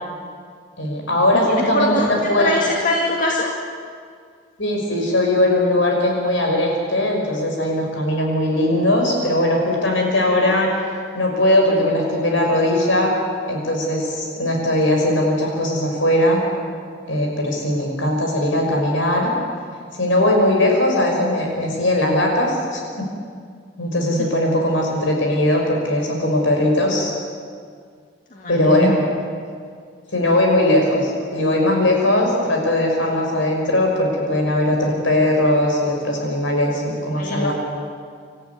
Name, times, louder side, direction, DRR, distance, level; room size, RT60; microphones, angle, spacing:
voice 1, 0.8-2.6 4.6-10.7 11.1-13.1 13.5-16.4 17.1-19.3 20.0-22.8 23.8-27.1 28.5-29.0 30.1-37.5, left 1 dB, 75° left, 0 dB, 5.9 m, -19 dB
voice 2, 1.5-2.1 2.4-3.5 28.3-29.0 37.1-37.5, left 1 dB, 40° left, -2 dB, 2.3 m, -22 dB
26.0 x 14.0 x 9.7 m, 2.1 s
head